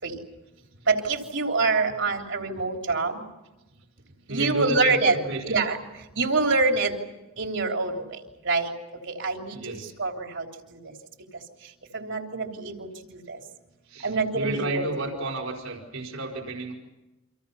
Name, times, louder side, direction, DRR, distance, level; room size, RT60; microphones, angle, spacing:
voice 1, 0.9-3.2 4.3-5.2 5.4-5.8 6.2-6.9 7.4-8.2 8.4-8.7 9.1-10.5 10.7-10.8 11.9-13.4 14.0-14.8, right 3 dB, 60° right, 3 dB, 3.5 m, -25 dB
voice 2, 4.1-5.6 9.5-9.9 13.9-16.7, right 2 dB, 75° right, 1 dB, 4.8 m, -32 dB
29.5 x 26.0 x 5.7 m, 1.0 s
head